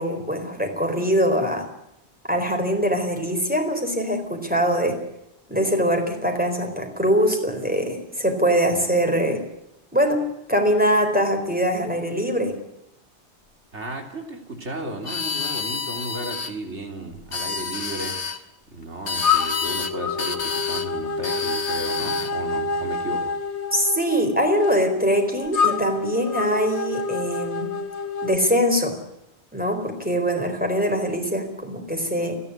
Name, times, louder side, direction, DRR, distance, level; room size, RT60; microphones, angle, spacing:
voice 1, 0.0-1.7 2.3-5.0 5.5-9.4 9.9-12.6 23.7-27.7 28.2-29.0 29.5-32.4, equal, 10° right, 4 dB, 4.1 m, -23 dB
voice 2, 13.7-18.4 18.7-23.3, right 2 dB, 85° right, 3 dB, 3.8 m, -34 dB
sound 1, 15.0-16.5 17.2-18.4 19.1-19.9 20.2-20.9 21.2-22.3, left 5 dB, 55° left, 1.6 m, -29 dB
sound 2, 19.2-28.4, left 4 dB, 80° left, 2.2 m, -27 dB
30.0 x 11.0 x 9.7 m, 0.85 s
omnidirectional pair, 1.1 m